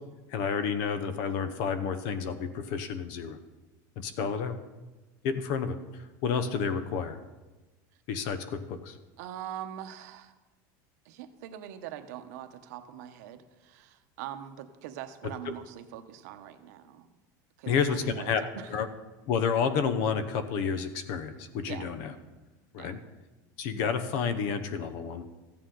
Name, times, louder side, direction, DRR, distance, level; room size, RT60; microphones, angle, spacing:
voice 1, 0.3-3.4 4.0-4.5 5.2-7.2 8.1-9.0 15.5-15.6 17.7-18.4 18.7-18.9 19.3-22.1 22.7-23.0 23.6-25.2, left 6 dB, 55° left, 11 dB, 0.9 m, -30 dB
voice 2, 9.2-10.3 11.0-17.1 17.6-18.8 21.7-21.9 22.8-22.9, right 11 dB, 70° right, 9 dB, 0.9 m, -42 dB
14.5 x 8.7 x 3.8 m, 1.2 s
supercardioid pair, 160°, 9 cm